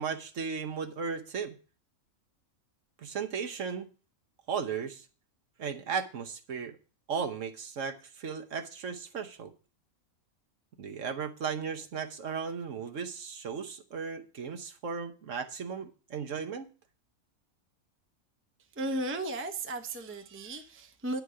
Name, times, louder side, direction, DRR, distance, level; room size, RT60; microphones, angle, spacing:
voice 1, 0.0-1.5 3.0-3.9 4.5-5.0 5.6-6.8 7.1-9.5 10.8-16.7, right 6 dB, 60° right, 1.3 m, -36 dB
voice 2, 18.8-21.2, right 2 dB, 10° right, 0.7 m, -35 dB
9.7 x 4.7 x 7.6 m
omnidirectional pair, 1.5 m